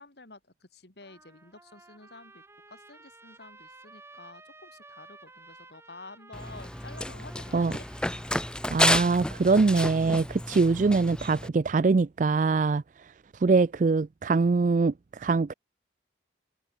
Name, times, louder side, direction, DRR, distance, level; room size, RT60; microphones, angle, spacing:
voice 1, 0.0-7.8, left 3 dB, 65° left, 3.1 m, -50 dB
Trumpet, 1.0-8.9, right 2 dB, 15° right, 5.2 m, -53 dB
Run, 6.3-11.5, left 1 dB, 5° left, 1.4 m, -30 dB
voice 2, 8.7-12.8 13.4-15.5, right 4 dB, 45° right, 0.4 m, -23 dB
open air
head